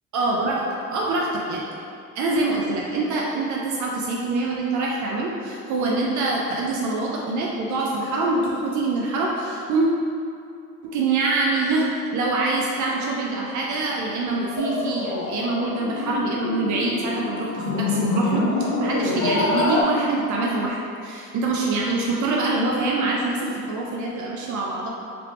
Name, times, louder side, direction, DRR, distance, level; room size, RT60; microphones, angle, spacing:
voice 1, 0.1-1.7 2.2-9.9 10.8-20.8 21.0-24.9, right 3 dB, 65° right, -2 dB, 0.5 m, -25 dB
sound 1, 14.6-19.8, left 2 dB, 65° left, 0.6 m, -25 dB
3.4 x 3.0 x 2.5 m, 2.5 s
cardioid pair, 125°, 31 cm